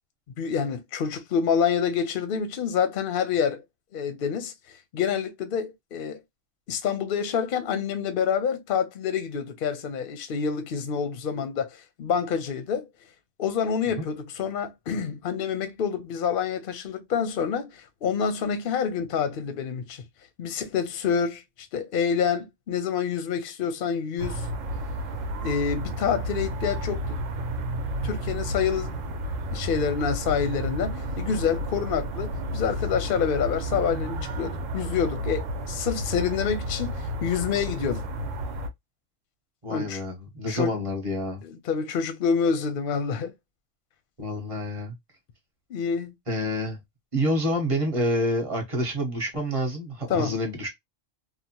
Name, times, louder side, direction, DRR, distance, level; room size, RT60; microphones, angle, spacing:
voice 1, 0.4-3.6 3.9-4.5 4.9-6.2 6.7-12.9 13.4-20.0 20.4-21.4 21.7-24.5 25.4-27.2 28.0-28.9 29.5-38.0 39.7-40.0 40.5-40.7 41.4-43.3 45.7-46.1 50.1-50.4, left 7 dB, 55° left, 0.7 m, -27 dB
sound 1, 24.2-38.7, right 1 dB, 80° right, 1.0 m, -31 dB
voice 2, 39.6-41.4 44.2-44.9 46.3-46.8 47.1-50.7, equal, 30° right, 1.0 m, -28 dB
2.8 x 2.1 x 2.7 m
omnidirectional pair, 1.3 m